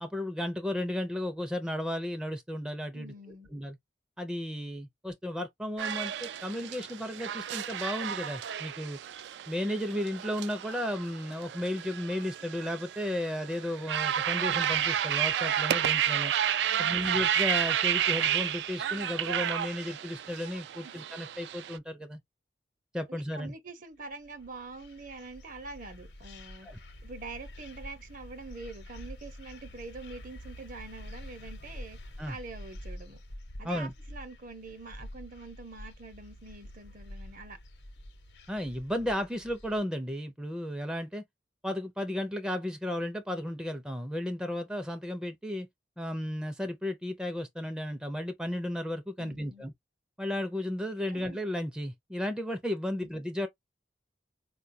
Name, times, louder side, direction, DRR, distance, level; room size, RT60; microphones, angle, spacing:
voice 1, 0.0-3.1 3.5-3.8 4.2-9.0 9.5-16.3 16.8-22.2 22.9-23.5 26.7-26.8 32.2-32.4 33.6-33.9 38.5-41.2 41.6-45.7 46.0-49.7 50.2-53.5, left 1 dB, 5° right, 0.4 m, -34 dB
voice 2, 2.9-3.5 16.6-17.2 20.8-20.9 23.1-26.7 27.0-32.0 32.2-33.2 33.6-37.6 49.2-49.7 51.1-51.4 52.9-53.1, right 3 dB, 50° right, 0.8 m, -45 dB
sound 1, 5.8-21.8, right 10 dB, 75° right, 0.3 m, -31 dB
sound 2, 24.1-39.8, left 1 dB, 75° left, 0.8 m, -47 dB
4.4 x 2.2 x 2.6 m
head